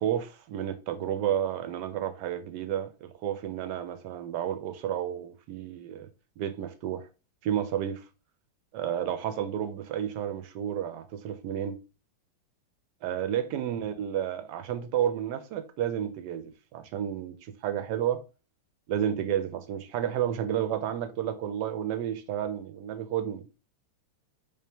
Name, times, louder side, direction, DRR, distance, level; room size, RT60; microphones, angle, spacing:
voice 1, 0.0-6.1 6.4-7.1 7.4-8.0 8.7-11.8 13.0-17.3 17.6-18.2 18.9-23.4, right 10 dB, 75° right, 1.1 m, -31 dB
3.5 x 3.3 x 2.8 m
omnidirectional pair, 2.1 m